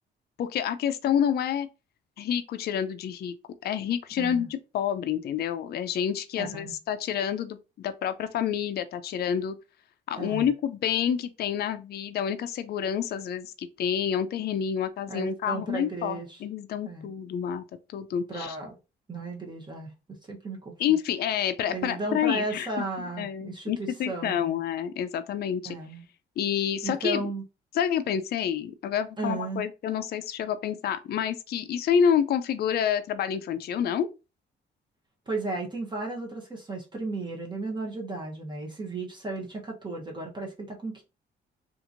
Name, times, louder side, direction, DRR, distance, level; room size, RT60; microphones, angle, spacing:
voice 1, 0.4-1.7 2.2-3.3 3.6-9.6 10.1-17.6 17.9-18.6 20.8-25.8 26.4-27.2 27.7-34.1, left 8 dB, 55° left, 0.4 m, -28 dB
voice 2, 4.2-4.5 6.4-6.7 10.1-10.5 15.1-16.4 16.8-17.1 18.3-18.7 19.1-19.9 20.3-20.7 21.7-24.6 25.6-26.0 26.8-27.4 29.2-29.6 35.3-41.0, right 2 dB, 25° right, 0.8 m, -34 dB
2.8 x 2.5 x 2.5 m
cardioid pair, 90°, 20 cm